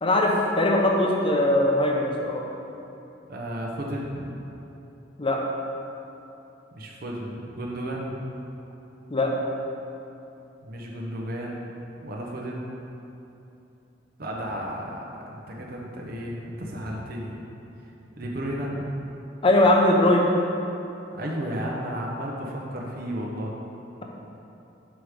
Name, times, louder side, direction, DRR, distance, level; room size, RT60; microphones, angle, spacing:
voice 1, 0.0-2.4 5.2-5.4 9.1-9.3 19.4-20.2, left 1 dB, 30° left, 0 dB, 0.7 m, -20 dB
voice 2, 3.3-4.3 6.7-8.2 10.6-11.7 12.0-12.7 14.2-17.4 18.2-18.9 21.1-23.5, equal, 55° right, -2 dB, 0.8 m, -33 dB
6.2 x 4.8 x 5.0 m, 2.9 s
head